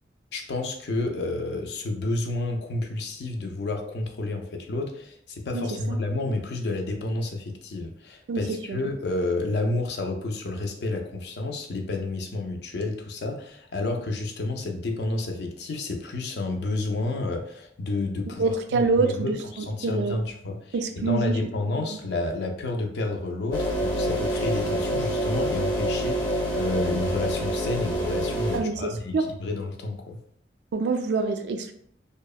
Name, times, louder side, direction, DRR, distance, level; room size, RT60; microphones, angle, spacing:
voice 1, 0.3-30.2, left 2 dB, 70° left, 4 dB, 0.4 m, -30 dB
voice 2, 5.5-6.0 8.3-8.8 18.4-20.2 20.7-21.4 21.9-22.0 28.5-29.3 30.7-31.7, right 4 dB, 75° right, 6 dB, 0.3 m, -26 dB
sound 1, 23.5-28.6, equal, 25° left, 0.6 m, -27 dB
2.8 x 2.0 x 2.3 m, 0.68 s
head